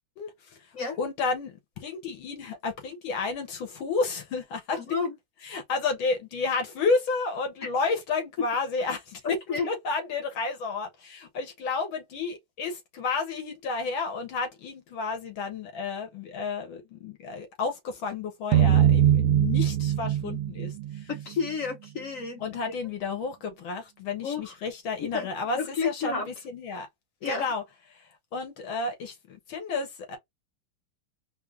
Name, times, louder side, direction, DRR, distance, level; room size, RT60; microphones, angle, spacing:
voice 1, 0.2-0.6 1.0-5.0 5.4-21.1 22.4-26.9 27.2-27.6 27.9-30.2, left 4 dB, 80° left, 1.9 m, -31 dB
voice 2, 4.7-5.2 9.2-9.7 21.1-22.4 22.7-22.8 24.2-24.5 25.0-25.3 25.5-26.3 27.2-27.5, left 5 dB, 55° left, 0.9 m, -31 dB
sound 1, 18.5-21.7, right 10 dB, 80° right, 1.3 m, -22 dB
4.4 x 2.1 x 3.5 m
omnidirectional pair, 2.2 m